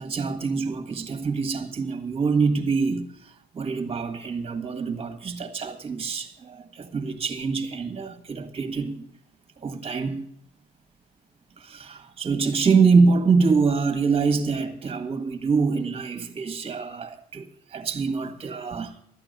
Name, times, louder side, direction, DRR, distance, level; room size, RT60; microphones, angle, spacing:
voice 1, 0.0-9.0 9.6-10.3 11.6-19.0, right 4 dB, 35° right, 1.7 m, -25 dB
13.0 x 8.9 x 6.6 m
cardioid pair, 110°, 17 cm